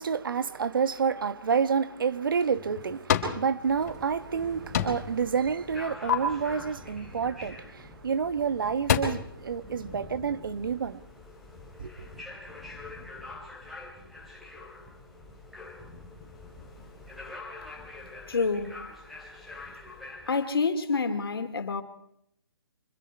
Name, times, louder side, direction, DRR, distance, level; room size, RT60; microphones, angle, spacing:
voice 1, 0.0-11.0 11.8-12.1, right 6 dB, 60° right, 1.4 m, -29 dB
sound 1, 2.3-3.4 3.8-4.5 4.7-5.2 5.5-6.1 8.0-8.1 8.5-9.0, left 8 dB, 40° left, 4.7 m, -28 dB
sound 2, 3.6-20.3, left 2 dB, ahead, 4.2 m, -45 dB
voice 2, 18.3-18.9 20.3-21.8, left 4 dB, 75° left, 3.1 m, -28 dB
26.0 x 22.0 x 4.5 m
hypercardioid pair, 155°, 12 cm